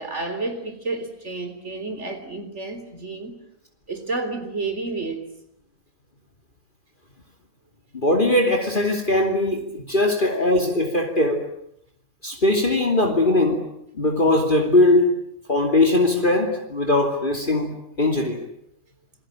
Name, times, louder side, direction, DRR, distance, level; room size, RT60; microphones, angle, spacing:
voice 1, 0.0-3.4 3.9-5.2, right 3 dB, 55° right, 8 dB, 4.0 m, -30 dB
voice 2, 7.9-11.5 12.2-13.6 13.9-15.1 15.5-18.4, left 2 dB, 35° left, 3 dB, 2.9 m, -20 dB
27.5 x 21.5 x 9.0 m, 0.75 s
omnidirectional pair, 1.4 m